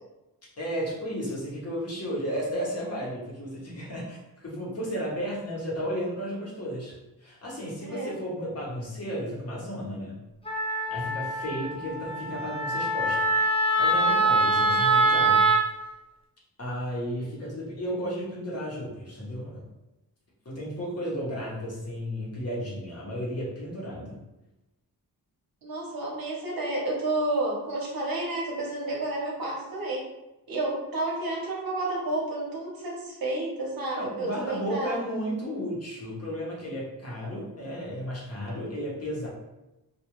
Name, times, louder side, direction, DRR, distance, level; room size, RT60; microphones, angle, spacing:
voice 1, 0.6-6.9 7.2-10.2 10.9-15.4 16.6-19.6 20.4-24.2 34.0-39.3, equal, 40° left, -4 dB, 0.9 m, -33 dB
Wind instrument woodwind instrument, 10.5-15.6, right 2 dB, 15° left, 0.4 m, -24 dB
voice 2, 25.6-30.0 30.5-35.0, right 2 dB, 70° right, -3 dB, 0.9 m, -30 dB
2.3 x 2.3 x 3.0 m, 0.97 s
wide cardioid pair, 100°, 36 cm